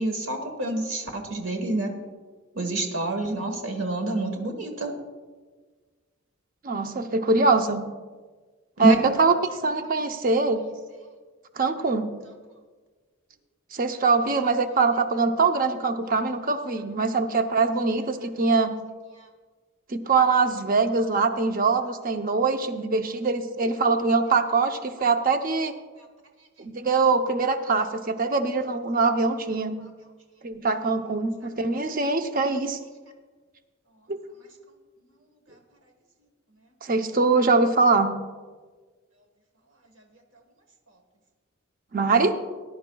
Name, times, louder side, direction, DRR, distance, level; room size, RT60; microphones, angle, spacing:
voice 1, 0.0-1.9 2.5-4.9 8.8-9.0 27.8-27.9, right 2 dB, 65° right, 3 dB, 1.4 m, -27 dB
voice 2, 6.6-7.8 8.8-10.6 11.6-12.1 13.7-18.7 19.9-25.7 26.6-29.8 30.4-32.8 36.8-38.1 41.9-42.4, right 4 dB, 40° right, 7 dB, 0.7 m, -23 dB
19.0 x 10.5 x 2.3 m, 1.4 s
head